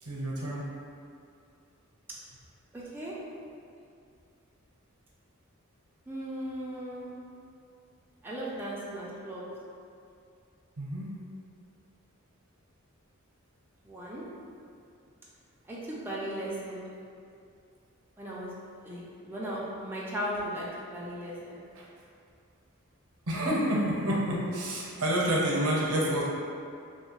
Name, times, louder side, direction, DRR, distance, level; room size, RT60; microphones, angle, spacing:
voice 1, 0.0-0.7 10.8-11.1 21.8-21.9 23.3-26.2, right 1 dB, 85° right, -5 dB, 0.6 m, -28 dB
voice 2, 2.7-3.1 6.1-7.2 8.2-9.4 13.8-14.2 15.7-16.9 18.2-18.5 18.8-21.6, equal, 10° right, -7 dB, 0.3 m, -37 dB
2.7 x 2.2 x 2.9 m, 2.4 s
head